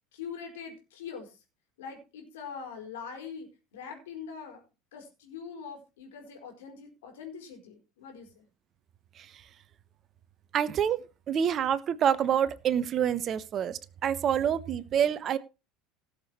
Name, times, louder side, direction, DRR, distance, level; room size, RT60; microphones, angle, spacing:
voice 1, 0.1-1.4 1.8-4.6 4.9-8.5, left 6 dB, 70° left, 3 dB, 4.6 m, -43 dB
voice 2, 10.5-15.4, right 8 dB, 40° right, 16 dB, 1.0 m, -27 dB
18.0 x 6.9 x 4.4 m, 0.30 s
figure-of-eight pair, 75°, 0 cm